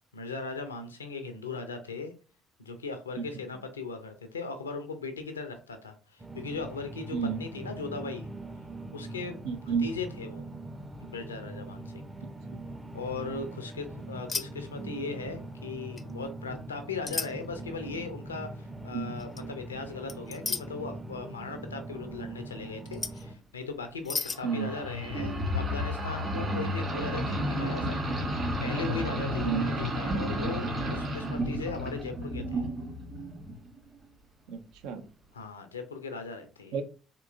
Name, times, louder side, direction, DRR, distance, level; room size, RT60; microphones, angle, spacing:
voice 1, 0.1-2.1 2.6-8.3 8.9-9.5 9.8-10.4 11.0-12.1 12.9-28.0 28.6-32.6 35.3-36.8, left 4 dB, 90° left, 7 dB, 0.4 m, -38 dB
sound 1, 6.2-23.3, right 2 dB, 20° right, 0.6 m, -42 dB
voice 2, 7.1-7.4 9.4-9.9 18.9-19.2 24.4-24.7 29.4-29.7 34.5-35.0 36.7-36.8, right 6 dB, 70° right, 8 dB, 0.5 m, -30 dB
sound 2, 14.3-14.5 14.8-15.1 16.0-16.1 17.1-17.3 19.2-19.4 20.1-20.6 22.8-23.2 24.0-24.4, left 4 dB, 30° left, 0.4 m, -33 dB
sound 3, 24.3-33.7, equal, 35° right, 1.9 m, -32 dB
3.6 x 2.8 x 2.5 m, 0.37 s
figure-of-eight pair, 55°, 0 cm